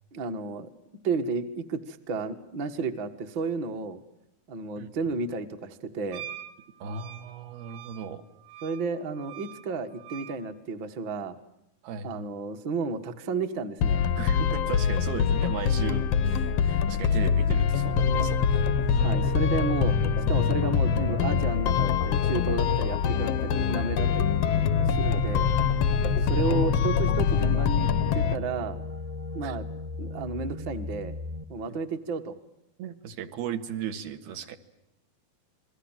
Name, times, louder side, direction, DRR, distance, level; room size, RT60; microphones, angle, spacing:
voice 1, 0.1-0.7 1.0-4.0 4.5-6.3 8.6-11.3 12.0-14.0 19.0-20.0 20.3-24.3 24.8-25.5 26.2-28.8 29.3-29.6 30.0-31.2 31.5-32.3, right 4 dB, 50° right, 7 dB, 1.4 m, -32 dB
Wind instrument woodwind instrument, 6.1-10.4, right 13 dB, 65° right, 2.8 m, -45 dB
voice 2, 6.8-8.2 11.8-12.2 14.2-19.0 24.9-25.2 26.0-26.5 29.4-29.6 31.7-31.8 32.8-34.6, right 7 dB, 80° right, 7 dB, 3.6 m, -37 dB
sound 1, 13.8-28.4, left 7 dB, 85° left, 1.4 m, -24 dB
sound 2, 17.7-31.4, right 1 dB, 20° right, 1.0 m, -34 dB
29.0 x 22.0 x 7.3 m, 0.86 s
omnidirectional pair, 4.4 m